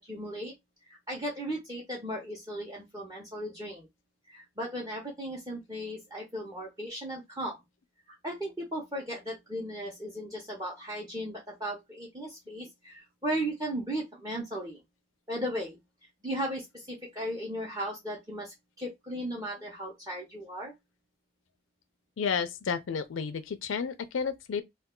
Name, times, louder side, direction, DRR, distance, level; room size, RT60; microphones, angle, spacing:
voice 1, 0.1-0.5 1.1-3.9 4.3-7.6 8.2-14.8 15.3-15.8 16.2-20.7, right 1 dB, 20° right, 0.7 m, -36 dB
voice 2, 22.2-24.6, left 6 dB, 80° left, 0.4 m, -31 dB
2.3 x 2.3 x 3.7 m
head